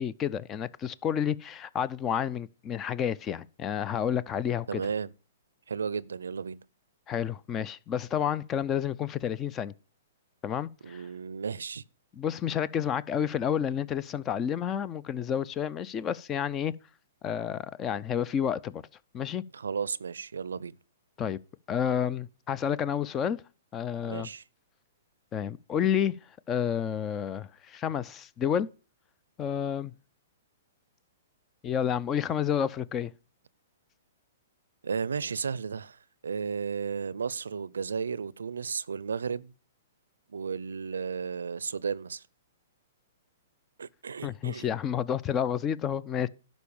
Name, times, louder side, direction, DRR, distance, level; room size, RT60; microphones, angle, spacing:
voice 1, 0.0-4.8 7.1-9.7 10.4-11.0 12.1-16.7 17.2-18.8 19.1-19.4 21.2-21.4 21.7-23.4 23.7-24.3 25.3-26.2 26.5-28.7 29.4-29.9 31.6-33.1 44.2-46.3, left 8 dB, 25° left, 0.5 m, -30 dB
voice 2, 4.7-5.1 5.7-6.6 10.8-11.8 19.5-20.7 24.0-24.4 34.8-36.0 36.2-39.5 40.3-42.2 43.8-44.7, right 6 dB, 85° right, 0.5 m, -34 dB
11.5 x 5.3 x 7.0 m
hypercardioid pair, 135°, 0 cm